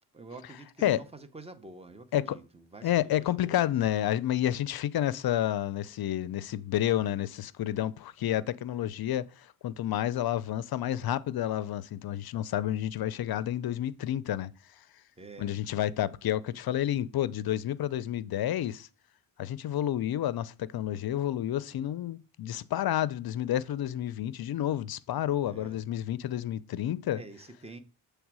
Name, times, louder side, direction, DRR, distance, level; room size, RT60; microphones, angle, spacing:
voice 1, 0.1-3.8 15.2-15.5 21.7-21.8 25.5-25.8 27.1-27.8, right 3 dB, 15° right, 0.7 m, -48 dB
voice 2, 2.8-14.5 15.4-18.9 19.4-27.2, left 12 dB, 60° left, 0.5 m, -30 dB
7.2 x 3.4 x 6.0 m
wide cardioid pair, 115°, 43 cm